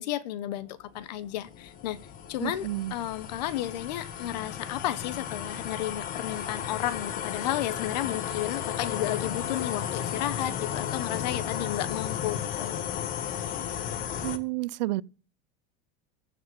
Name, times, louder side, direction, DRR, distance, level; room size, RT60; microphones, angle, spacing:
voice 1, 0.0-2.0 2.3-12.8, left 13 dB, 80° left, 1.2 m, -33 dB
sound 1, 0.9-14.4, left 9 dB, 40° left, 1.6 m, -34 dB
voice 2, 2.4-2.9 14.2-15.0, right 18 dB, 85° right, 0.5 m, -30 dB
14.5 x 5.8 x 7.8 m
supercardioid pair, 125°, 21 cm